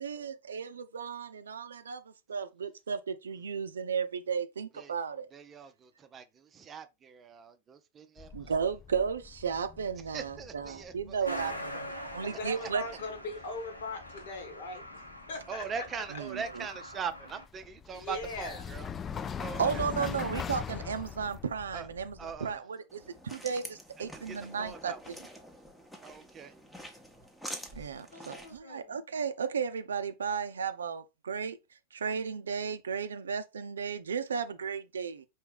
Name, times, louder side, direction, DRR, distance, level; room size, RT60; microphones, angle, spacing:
voice 1, 0.0-2.0 2.3-5.3 8.3-12.8 16.1-16.6 19.6-25.2 27.8-31.6 31.9-35.3, right 6 dB, 70° right, 0.5 m, -34 dB
voice 2, 5.3-8.5 10.1-11.4 12.5-12.7 15.5-18.9 19.4-19.9 21.7-21.9 22.2-22.6 24.0-25.0 26.0-26.5, right 6 dB, 25° right, 0.6 m, -41 dB
sound 1, 8.2-22.6, left 7 dB, 20° left, 0.3 m, -43 dB
Truck, 11.2-17.5, equal, 85° left, 0.8 m, -44 dB
voice 3, 12.2-14.8 15.3-15.9 16.1-16.2 17.9-18.6 20.0-20.1 20.3-20.4 28.1-29.0, left 2 dB, 55° left, 1.3 m, -40 dB
sound 2, 22.9-28.6, equal, 5° left, 0.9 m, -47 dB
4.5 x 3.0 x 3.3 m
figure-of-eight pair, 90°, 0 cm